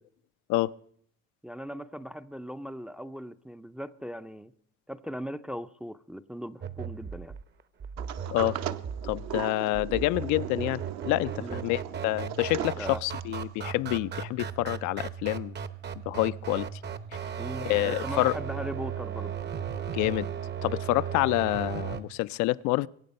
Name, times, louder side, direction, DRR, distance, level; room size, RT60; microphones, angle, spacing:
voice 1, 1.4-4.5 4.9-7.4 11.4-11.6 12.7-13.0 17.4-19.4, equal, 5° right, 0.5 m, -39 dB
sound 1, 6.6-22.0, right 8 dB, 35° right, 0.8 m, -36 dB
Sliding door, 8.0-13.4, right 10 dB, 60° right, 0.9 m, -38 dB
voice 2, 9.0-15.6 16.1-16.8 17.6-18.3 19.9-20.3 20.6-22.9, left 19 dB, 75° left, 0.5 m, -28 dB
23.0 x 8.6 x 5.3 m
cardioid pair, 115°, 29 cm